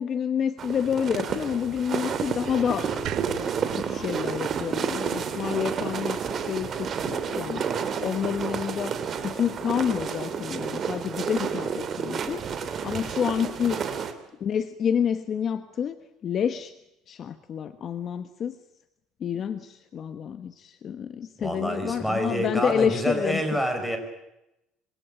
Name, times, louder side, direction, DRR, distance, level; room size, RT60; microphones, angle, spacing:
voice 1, 0.0-2.9 3.7-13.8 14.4-16.7 17.1-18.6 19.2-23.6, left 8 dB, 40° left, 10 dB, 1.3 m, -29 dB
sound 1, 0.6-14.1, right 7 dB, 35° right, 2.9 m, -30 dB
sound 2, 3.0-6.2, right 13 dB, 60° right, 1.6 m, -41 dB
voice 2, 21.4-24.0, equal, ahead, 5 dB, 5.6 m, -27 dB
26.5 x 24.5 x 9.0 m, 0.89 s
cardioid pair, 145°, 0 cm